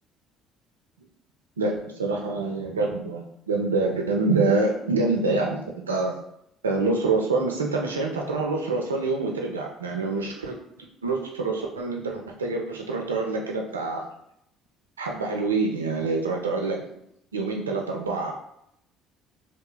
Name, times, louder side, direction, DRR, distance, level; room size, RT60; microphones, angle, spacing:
voice 1, 1.6-6.2 6.6-10.6 11.0-14.0 15.0-16.8 17.3-18.3, right 3 dB, 90° right, 1 dB, 0.3 m, -26 dB
2.9 x 2.1 x 2.3 m, 0.76 s
hypercardioid pair, 55°, 0 cm